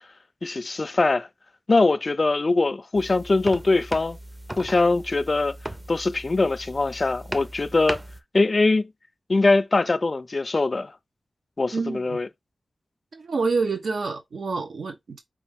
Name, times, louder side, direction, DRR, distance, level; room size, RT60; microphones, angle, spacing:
voice 1, 0.4-1.3 1.7-4.2 4.6-5.6 5.9-8.0 8.3-8.9 9.3-10.9 11.6-12.3, left 3 dB, 40° left, 0.4 m, -22 dB
sound 1, 2.9-8.2, right 1 dB, 15° right, 0.5 m, -37 dB
voice 2, 11.7-12.2 13.1-15.2, right 4 dB, 90° right, 0.9 m, -27 dB
5.1 x 2.5 x 3.5 m
wide cardioid pair, 110°, 0 cm